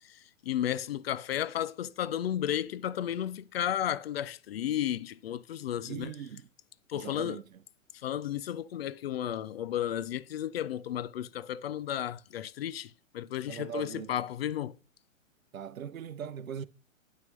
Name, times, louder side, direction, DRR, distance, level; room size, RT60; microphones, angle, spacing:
voice 1, 0.4-6.1 6.9-7.4 8.0-14.8, left 11 dB, 50° left, 0.5 m, -33 dB
voice 2, 5.9-6.5 6.9-7.6 13.5-14.2 15.5-16.6, right 8 dB, 75° right, 0.7 m, -40 dB
9.4 x 5.9 x 3.1 m
figure-of-eight pair, 115°, 41 cm